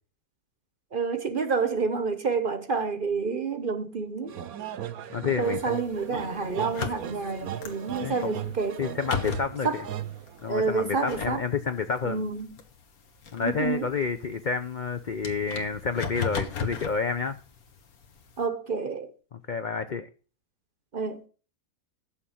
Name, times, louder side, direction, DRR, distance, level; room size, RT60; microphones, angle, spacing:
voice 1, 0.9-4.3 5.4-8.8 9.6-9.8 10.5-11.4 12.0-12.5 13.4-13.9 18.4-19.1 20.9-21.2, right 4 dB, 45° right, 0.9 m, -28 dB
sound 1, 4.3-10.8, right 10 dB, 75° right, 1.2 m, -37 dB
voice 2, 5.1-5.6 8.0-8.3 8.8-9.8 10.4-12.2 13.3-17.4 19.3-20.1, left 5 dB, 55° left, 0.5 m, -29 dB
sound 2, 5.4-18.4, left 6 dB, 75° left, 1.8 m, -39 dB
8.9 x 6.9 x 7.1 m
omnidirectional pair, 1.6 m